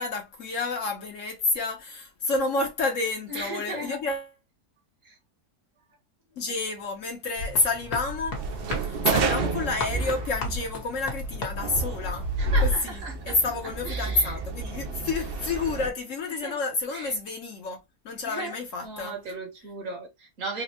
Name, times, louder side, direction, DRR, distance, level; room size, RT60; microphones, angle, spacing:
voice 1, 0.0-4.3 6.4-8.4 8.8-12.3 12.6-19.2, left 3 dB, 60° left, 1.0 m, -29 dB
voice 2, 3.3-4.0 5.0-5.1 12.4-13.4 13.8-14.4 16.4-16.6 16.9-17.1 18.3-18.5 18.8-20.6, right 2 dB, 60° right, 1.4 m, -36 dB
sound 1, 7.4-12.8, left 1 dB, 80° left, 1.7 m, -31 dB
sound 2, 8.3-15.9, right 5 dB, 90° right, 0.5 m, -31 dB
4.1 x 2.1 x 2.8 m
omnidirectional pair, 1.6 m